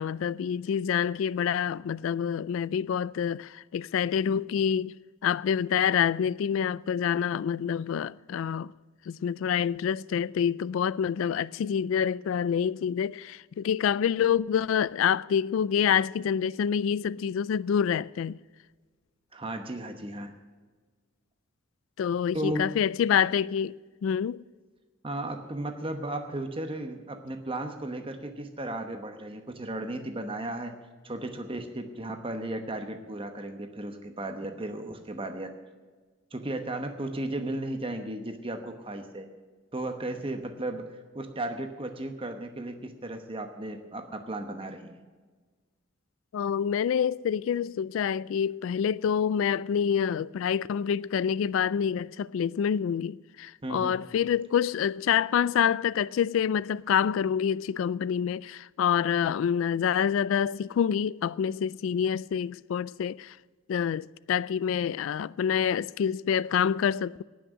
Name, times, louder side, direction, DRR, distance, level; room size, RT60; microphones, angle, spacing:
voice 1, 0.0-4.9 5.2-8.7 9.1-18.4 22.0-23.8 24.0-24.4 46.3-63.4 63.7-67.2, left 8 dB, 70° left, 0.3 m, -27 dB
voice 2, 19.3-20.3 22.3-22.7 25.0-30.7 31.0-35.5 36.3-39.3 39.7-45.0 53.6-54.0, right 1 dB, 25° right, 1.0 m, -35 dB
18.0 x 6.4 x 8.1 m
head